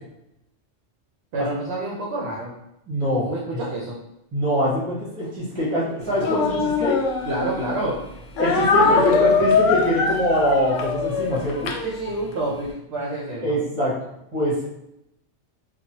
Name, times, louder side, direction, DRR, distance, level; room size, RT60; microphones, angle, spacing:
voice 1, 1.3-2.5 3.2-4.0 7.2-8.0 8.8-9.5 11.8-13.5, right 2 dB, 65° right, -3 dB, 0.8 m, -28 dB
voice 2, 2.9-3.3 4.3-7.0 8.4-11.7 13.4-13.9 14.3-14.7, equal, 25° right, -6 dB, 0.9 m, -23 dB
Speech, 6.2-7.7 8.4-12.4, left 5 dB, 80° left, 0.9 m, -22 dB
3.0 x 2.3 x 2.7 m, 0.83 s
omnidirectional pair, 1.3 m